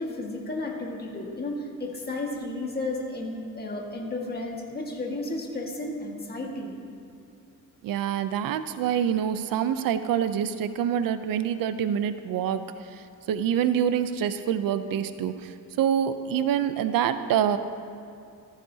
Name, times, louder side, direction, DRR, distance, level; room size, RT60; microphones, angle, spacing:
voice 1, 0.0-6.7, left 2 dB, 30° left, -1 dB, 1.7 m, -33 dB
voice 2, 7.8-17.6, right 9 dB, 90° right, 11 dB, 0.6 m, -26 dB
15.0 x 14.0 x 2.8 m, 2.5 s
cardioid pair, 150°, 33 cm